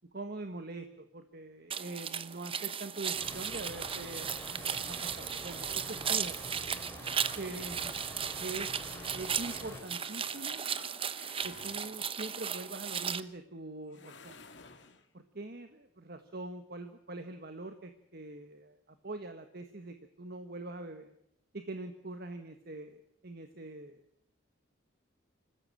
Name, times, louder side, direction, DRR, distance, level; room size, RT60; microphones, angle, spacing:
voice 1, 0.1-4.4 4.9-6.4 7.4-8.1 8.4-8.7 9.1-10.6 11.4-14.4 15.1-21.1 21.5-24.0, right 2 dB, 50° right, 8 dB, 1.4 m, -43 dB
sound 1, 1.7-13.2, right 7 dB, 30° right, 0.9 m, -36 dB
sound 2, 3.1-9.8, left 1 dB, 10° left, 4.7 m, -47 dB
sound 3, 7.5-12.3 13.9-15.1, left 3 dB, 65° left, 2.4 m, -55 dB
26.0 x 15.0 x 8.9 m, 0.73 s
head